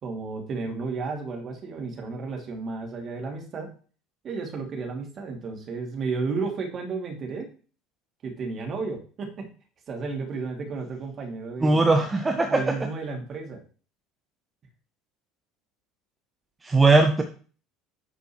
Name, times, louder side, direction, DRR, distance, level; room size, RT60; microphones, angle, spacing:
voice 1, 0.0-3.7 4.2-7.5 8.2-9.5 9.9-12.1 12.5-13.6, right 4 dB, 40° right, 2 dB, 2.8 m, -33 dB
voice 2, 11.6-12.6 16.6-17.2, right 3 dB, 20° right, 4 dB, 1.3 m, -19 dB
10.5 x 6.7 x 3.2 m, 0.39 s
figure-of-eight pair, 65°, 0 cm